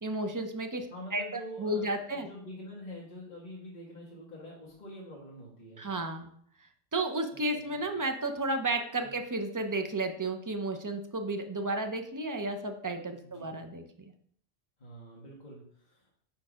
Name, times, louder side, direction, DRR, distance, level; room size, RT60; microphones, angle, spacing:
voice 1, 0.0-0.9 1.1-2.3 5.8-6.3 6.9-13.8, right 2 dB, 25° right, 6 dB, 0.4 m, -32 dB
voice 2, 0.9-5.8 7.3-8.0 9.0-9.2 13.2-13.5 14.8-16.1, equal, 40° left, -4 dB, 1.4 m, -46 dB
4.7 x 4.5 x 5.0 m, 0.62 s
omnidirectional pair, 1.2 m